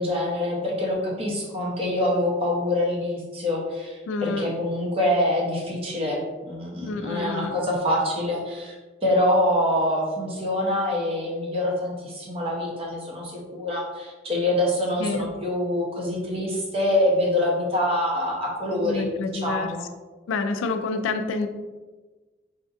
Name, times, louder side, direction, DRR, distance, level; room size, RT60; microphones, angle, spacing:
voice 1, 0.0-8.8 9.0-19.9, left 1 dB, 30° right, -3 dB, 0.7 m, -25 dB
voice 2, 4.1-4.5 6.8-7.5 15.0-15.3 18.8-19.7 20.3-21.5, left 3 dB, 85° left, 8 dB, 0.3 m, -28 dB
4.1 x 2.5 x 2.5 m, 1.3 s
head